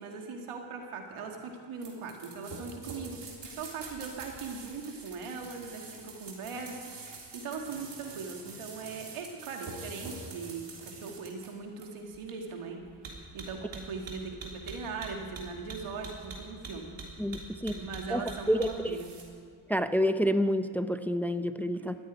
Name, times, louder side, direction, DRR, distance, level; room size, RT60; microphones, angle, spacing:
voice 1, 0.0-6.8 7.1-12.8 13.3-16.9 17.7-19.1 21.7-21.8, right 5 dB, 85° right, 3 dB, 2.1 m, -40 dB
sound 1, 1.8-19.2, right 4 dB, 60° right, 3.4 m, -45 dB
voice 2, 17.2-17.8 18.1-19.0 19.7-22.0, equal, 5° left, 10 dB, 0.7 m, -29 dB
13.5 x 10.0 x 9.1 m, 2.4 s
cardioid pair, 70°, 49 cm